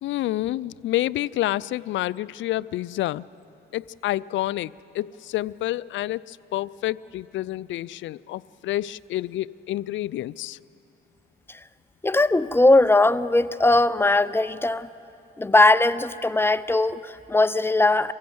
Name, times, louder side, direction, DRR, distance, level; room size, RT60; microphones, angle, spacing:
voice 1, 0.0-3.2 3.7-10.6, left 15 dB, 70° left, 20 dB, 0.4 m, -28 dB
voice 2, 12.0-14.9 15.4-18.1, left 2 dB, 10° left, 14 dB, 0.5 m, -19 dB
24.5 x 16.0 x 7.8 m, 2.9 s
cardioid pair, 90°, 20 cm